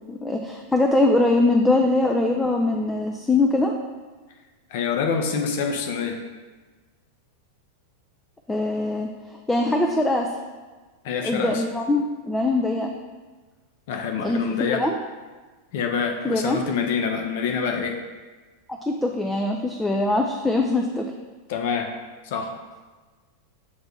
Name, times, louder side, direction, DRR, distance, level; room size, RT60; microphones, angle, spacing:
voice 1, 0.1-3.7 8.5-9.1 9.5-10.3 11.2-12.9 14.2-14.9 16.2-16.6 18.9-21.0, left 2 dB, 5° left, 1 dB, 0.4 m, -22 dB
voice 2, 4.7-6.2 11.0-11.6 13.9-14.9 15.7-18.0 21.5-21.9 22.2-22.6, left 6 dB, 50° left, 4 dB, 0.7 m, -26 dB
6.7 x 3.4 x 4.2 m, 1.3 s
figure-of-eight pair, 90°, 0 cm